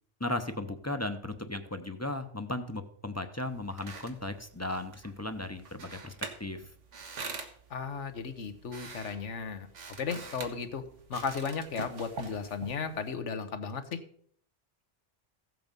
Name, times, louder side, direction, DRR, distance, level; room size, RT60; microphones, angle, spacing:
voice 1, 0.2-6.1 6.4-6.6, left 1 dB, 15° left, 8 dB, 0.8 m, -36 dB
sound 1, 3.4-13.1, right 4 dB, 80° right, 1.7 m, -45 dB
voice 2, 7.7-9.7 10.0-10.8 11.1-14.0, left 5 dB, 80° left, 10 dB, 1.4 m, -35 dB
15.5 x 7.8 x 5.3 m, 0.62 s
omnidirectional pair, 1.2 m